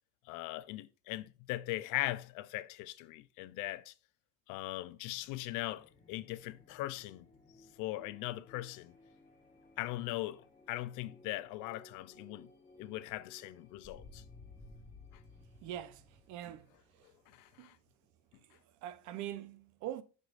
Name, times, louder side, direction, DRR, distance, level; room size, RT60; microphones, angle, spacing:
voice 1, 0.3-3.9 4.5-7.3 7.8-8.9 9.8-12.5 12.8-14.2 17.3-17.8, left 17 dB, 70° left, 0.6 m, -40 dB
sound 1, 4.6-18.1, left 2 dB, 20° left, 2.4 m, -59 dB
voice 2, 15.6-16.0 16.3-16.7 17.6-17.7 18.8-20.0, right 12 dB, 65° right, 0.8 m, -42 dB
6.6 x 6.3 x 2.5 m
cardioid pair, 155°, 32 cm